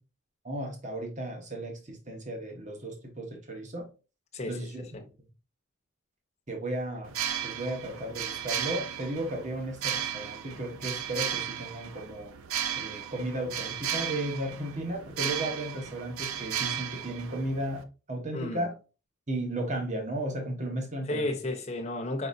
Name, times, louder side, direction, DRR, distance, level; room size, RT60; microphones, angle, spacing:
voice 1, 0.4-3.9 4.5-4.8 6.5-7.2 7.4-12.3 12.7-18.7 19.3-21.2, right 1 dB, 35° right, 1.1 m, -34 dB
voice 2, 4.3-5.1 18.3-18.7 21.1-22.3, left 1 dB, 30° left, 0.8 m, -33 dB
sound 1, 7.0-17.8, right 9 dB, 80° right, 0.5 m, -35 dB
4.9 x 3.9 x 2.6 m
head